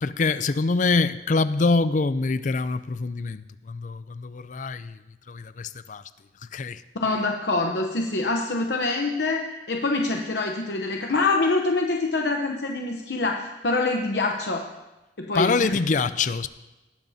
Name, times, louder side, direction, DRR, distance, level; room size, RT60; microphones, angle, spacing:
voice 1, 0.0-5.0 5.3-6.0 6.4-6.8 15.3-16.5, left 3 dB, 45° left, 14 dB, 0.5 m, -25 dB
voice 2, 7.0-14.7 15.2-15.7, left 3 dB, 70° left, 2 dB, 0.8 m, -25 dB
19.0 x 12.0 x 2.8 m, 1.0 s
head